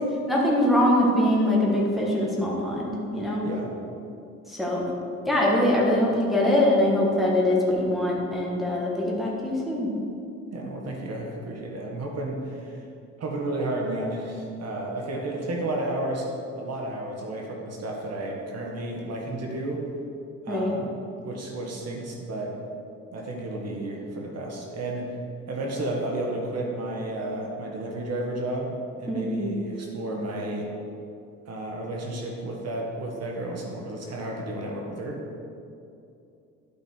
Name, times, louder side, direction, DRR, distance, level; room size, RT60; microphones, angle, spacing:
voice 1, 0.3-3.4 4.5-4.9 5.3-9.9 20.5-20.7 29.1-29.6, left 1 dB, ahead, -4 dB, 1.8 m, -23 dB
voice 2, 10.5-12.8 13.2-19.8 20.4-20.9 21.2-22.6 23.1-25.2 25.5-30.7 31.5-35.2, right 1 dB, 55° right, 0 dB, 1.6 m, -32 dB
11.5 x 5.6 x 4.5 m, 2.6 s
cardioid pair, 90°, 30 cm